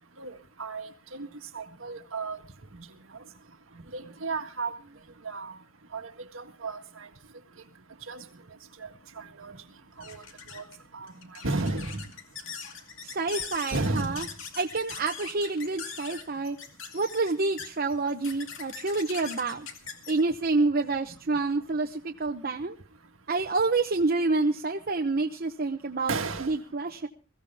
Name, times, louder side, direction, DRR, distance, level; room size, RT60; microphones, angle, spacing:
voice 1, 0.2-1.3 1.5-2.4 2.7-2.9 3.9-4.7 5.2-5.5 5.9-7.1 8.1-8.2 8.8-8.9 9.2-9.6 10.0-10.2 10.5-10.7 10.9-11.1 11.4-12.0 13.7-14.2 26.1-26.5, right 3 dB, 80° right, 6 dB, 1.8 m, -33 dB
sound 1, 8.9-21.8, left 6 dB, 70° left, 2.3 m, -43 dB
voice 2, 13.1-14.2 14.6-16.6 16.9-19.7 20.1-22.7 23.3-26.1 26.4-27.1, right 3 dB, 45° right, 3 dB, 0.9 m, -28 dB
22.0 x 15.5 x 3.5 m, 0.35 s
head